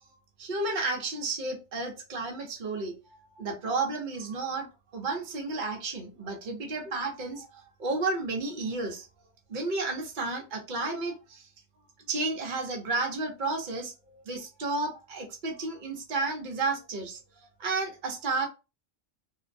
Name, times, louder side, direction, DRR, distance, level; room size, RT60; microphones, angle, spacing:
voice 1, 0.4-2.9 3.4-9.1 9.5-11.4 12.1-17.2 17.6-18.5, right 3 dB, 45° right, 0.7 m, -32 dB
2.5 x 2.0 x 2.5 m
omnidirectional pair, 1.3 m